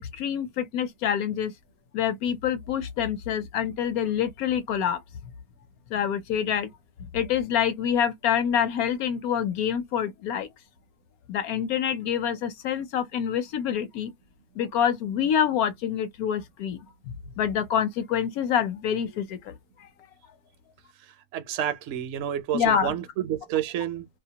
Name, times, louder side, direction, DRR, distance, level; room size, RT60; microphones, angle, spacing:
voice 1, 0.0-1.5 1.9-5.0 5.9-6.7 7.1-10.5 11.3-14.1 14.6-16.8 17.4-19.5 22.5-23.0, left 8 dB, 70° left, 1.0 m, -26 dB
voice 2, 21.3-24.1, right 10 dB, 70° right, 0.7 m, -29 dB
2.7 x 2.1 x 2.7 m
omnidirectional pair, 1.7 m